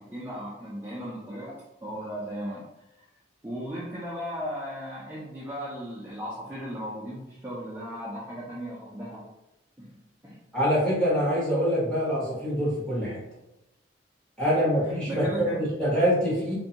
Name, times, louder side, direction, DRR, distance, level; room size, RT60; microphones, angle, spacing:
voice 1, 0.0-2.6 3.0-3.1 3.4-9.3 9.8-9.9 10.2-10.4 14.4-14.5 14.8-15.6, equal, 10° right, -7 dB, 0.4 m, -36 dB
voice 2, 10.5-13.2 14.4-16.6, equal, 5° left, -9 dB, 1.0 m, -25 dB
2.5 x 2.3 x 2.7 m, 0.92 s
head